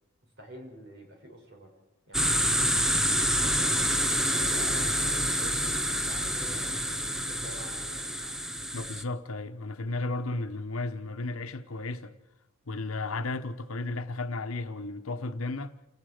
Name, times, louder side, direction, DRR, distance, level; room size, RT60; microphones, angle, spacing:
voice 1, 0.2-1.7 2.1-2.8 3.4-6.9 7.3-8.4, right 1 dB, 55° right, 7.1 m, -48 dB
sound 1, 2.1-9.0, equal, ahead, 0.7 m, -27 dB
voice 2, 8.7-12.1 12.7-15.7, left 2 dB, 85° left, 1.1 m, -34 dB
29.0 x 19.0 x 5.1 m
head